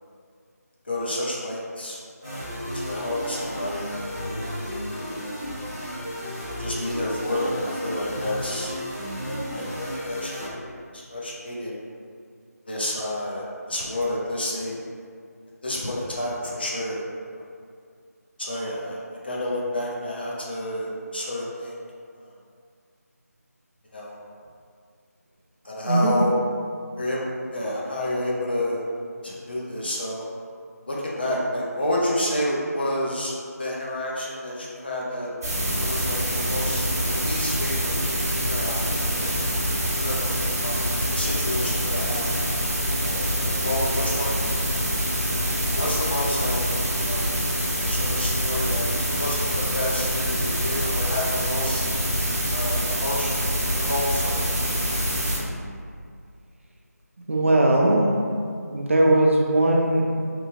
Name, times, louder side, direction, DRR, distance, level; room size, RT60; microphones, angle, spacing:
voice 1, 0.8-3.9 4.2-5.5 6.6-8.7 9.2-10.6 10.9-11.8 12.7-14.8 15.6-17.0 17.4-17.5 18.4-21.8 22.2-22.3 23.9-24.2 25.6-26.3 27.0-28.8 29.2-30.3 30.9-35.3 35.8-38.0 38.4-39.3 40.0-42.2 43.0-44.4 45.3-45.5 45.7-46.6 47.0-47.3 47.9-48.9 49.1-51.8 52.5-53.5 53.7-54.7, left 1 dB, 35° left, -4 dB, 0.4 m, -30 dB
sound 1, 2.2-10.5, equal, 15° right, 0.8 m, -33 dB
sound 2, 35.4-55.4, equal, 65° right, 0.8 m, -25 dB
voice 2, 57.3-58.2 58.7-60.1, right 1 dB, 50° right, -2 dB, 0.4 m, -19 dB
2.9 x 2.0 x 2.7 m, 2.2 s
figure-of-eight pair, 170°, 9 cm